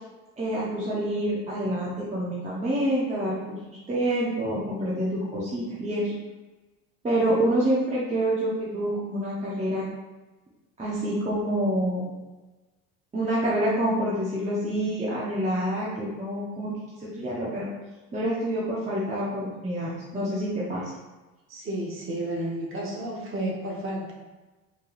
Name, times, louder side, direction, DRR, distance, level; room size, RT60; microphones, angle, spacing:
voice 1, 0.4-3.6 3.9-6.1 7.0-9.9 10.8-12.1 13.1-16.7 17.0-17.7 18.1-20.8, right 1 dB, 20° right, -7 dB, 1.0 m, -27 dB
voice 2, 21.5-24.1, right 1 dB, 35° right, -3 dB, 1.2 m, -31 dB
4.3 x 3.4 x 2.6 m, 1.2 s
supercardioid pair, 100°, 37 cm